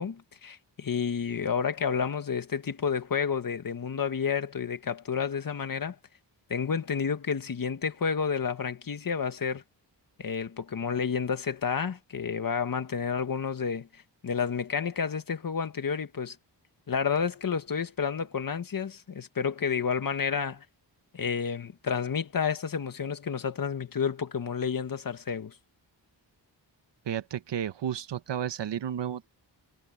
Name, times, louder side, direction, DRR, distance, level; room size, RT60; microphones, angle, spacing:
voice 1, 0.0-6.0 6.5-9.6 10.2-13.9 14.2-16.4 16.9-20.6 21.1-25.5, left 6 dB, 50° left, 1.9 m, -30 dB
voice 2, 27.0-29.3, right 9 dB, 70° right, 1.1 m, -32 dB
wide cardioid pair, 105°, 44 cm